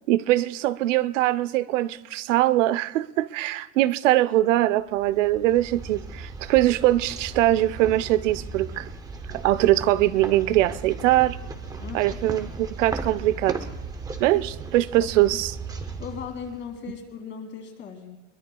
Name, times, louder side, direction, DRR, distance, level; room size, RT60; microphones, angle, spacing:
voice 1, 0.1-8.9 9.3-11.4 11.9-13.6 14.2-15.6, right 15 dB, 75° right, 0.6 m, -22 dB
sound 1, 4.9-17.0, right 3 dB, 10° right, 0.7 m, -37 dB
voice 2, 16.0-18.2, left 7 dB, 30° left, 2.6 m, -38 dB
22.5 x 21.0 x 2.3 m
supercardioid pair, 150°, 38 cm